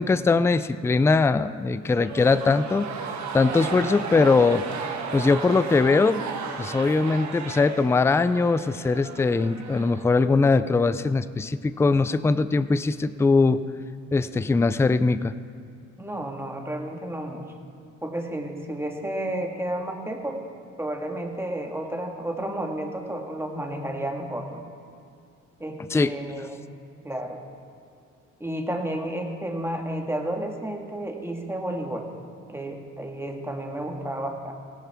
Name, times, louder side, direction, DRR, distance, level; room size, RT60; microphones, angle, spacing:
voice 1, 0.0-2.9 3.3-4.6 5.1-6.2 6.6-13.6 14.1-15.3 25.9-26.1, left 3 dB, 10° left, 14 dB, 0.3 m, -21 dB
sound 1, 2.0-10.4, right 5 dB, 65° right, 1.4 m, -35 dB
voice 2, 16.0-17.5 18.0-20.4 20.8-24.6 25.6-26.6 27.0-27.4 28.4-32.1 32.5-34.5, right 1 dB, 10° right, 1 dB, 1.7 m, -31 dB
17.0 x 10.0 x 3.5 m, 2.3 s
cardioid pair, 90°, 30 cm